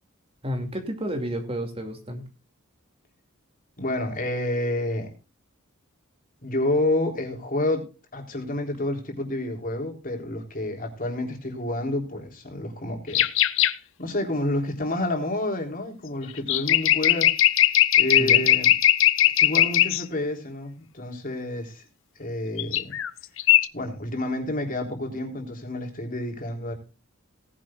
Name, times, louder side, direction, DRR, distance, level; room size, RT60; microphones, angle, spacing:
voice 1, 0.4-2.2 18.2-18.4, equal, 30° right, 5 dB, 2.5 m, -31 dB
voice 2, 3.8-5.1 6.4-7.8 8.1-13.3 14.0-17.3 18.0-18.7 19.4-21.8 22.2-23.0 23.7-26.7, left 1 dB, 40° left, 3 dB, 3.6 m, -29 dB
sound 1, 13.1-13.7 16.4-20.0 22.6-23.1 23.4-23.7, left 12 dB, 65° left, 0.7 m, -19 dB
18.5 x 10.5 x 2.5 m, 0.31 s
head